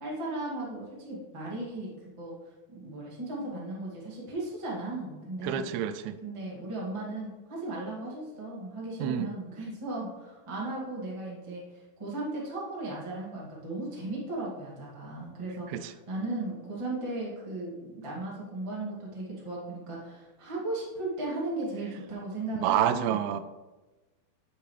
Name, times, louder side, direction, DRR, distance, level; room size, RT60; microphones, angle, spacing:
voice 1, 0.0-1.9 2.2-2.3 2.7-5.7 6.2-23.2, right 2 dB, 55° right, -6 dB, 0.3 m, -36 dB
voice 2, 5.4-6.2 9.0-9.3 15.7-15.8 22.6-23.4, right 10 dB, 85° right, 10 dB, 2.4 m, -28 dB
9.4 x 7.0 x 3.3 m, 1.2 s
omnidirectional pair, 4.9 m